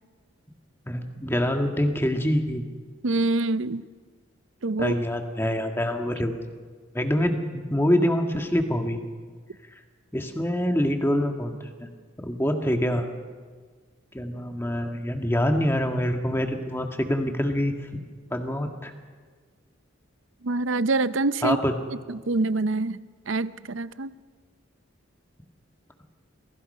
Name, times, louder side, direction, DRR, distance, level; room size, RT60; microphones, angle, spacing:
voice 1, 0.9-2.6 4.8-6.4 6.9-9.0 10.1-11.9 12.2-13.1 14.1-17.8 18.3-18.9 21.4-21.7, equal, 10° left, 4 dB, 1.8 m, -25 dB
voice 2, 3.0-3.8 4.6-5.0 20.4-21.6 22.1-24.1, right 3 dB, 70° right, 14 dB, 0.7 m, -26 dB
29.0 x 22.5 x 5.6 m, 1.6 s
head